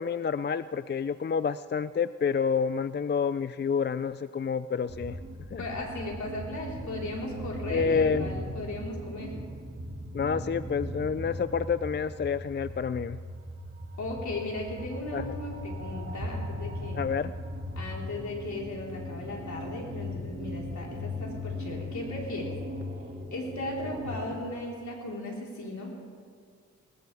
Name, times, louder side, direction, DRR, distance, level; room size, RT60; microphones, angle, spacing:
voice 1, 0.0-5.2 5.5-5.6 7.7-8.3 10.1-13.2 15.1-15.4 17.0-17.3, left 6 dB, 40° left, 14 dB, 0.4 m, -28 dB
sound 1, 4.9-24.4, left 1 dB, 40° right, 2.2 m, -38 dB
voice 2, 5.6-9.4 14.0-17.0 17.8-22.5 23.3-26.0, left 2 dB, 75° left, -3 dB, 4.3 m, -37 dB
20.0 x 20.0 x 3.5 m, 2.1 s
cardioid pair, 60°, 29 cm